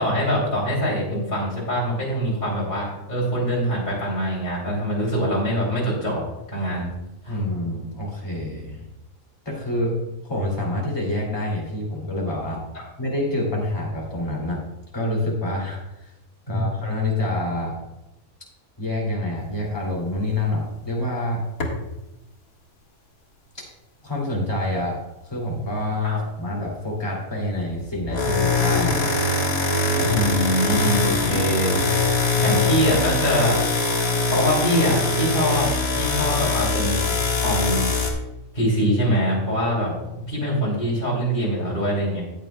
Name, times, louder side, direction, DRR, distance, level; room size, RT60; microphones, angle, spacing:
voice 1, 0.0-6.9 7.2-7.4 16.5-16.6 26.0-26.2 30.0-31.7 32.4-33.6 34.3-35.7 35.9-37.1 37.3-37.8 38.5-39.9 40.3-42.2, equal, 35° left, -5 dB, 3.2 m, -23 dB
voice 2, 7.3-8.9 9.4-10.0 10.2-12.6 13.0-14.6 14.9-16.1 16.5-17.8 18.8-21.4 23.6-23.7 24.0-29.0 32.3-32.6, left 1 dB, 15° left, -3 dB, 2.7 m, -27 dB
sound 1, 21.6-21.8 27.9-38.1, left 3 dB, 85° left, 2.2 m, -22 dB
15.0 x 9.4 x 2.3 m, 0.95 s
omnidirectional pair, 1.5 m